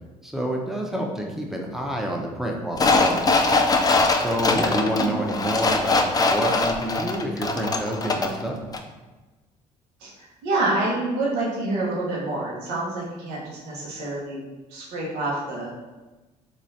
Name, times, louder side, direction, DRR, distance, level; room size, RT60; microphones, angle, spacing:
voice 1, 0.2-3.3 4.2-8.6, right 1 dB, 5° right, 0 dB, 0.8 m, -28 dB
sound 1, 2.8-8.4 8.7-8.8, left 3 dB, 25° left, 0.4 m, -22 dB
voice 2, 10.0-14.4 14.7-15.7, right 2 dB, 80° right, -6 dB, 1.1 m, -27 dB
3.6 x 3.0 x 2.7 m, 1.2 s
hypercardioid pair, 60°, 16 cm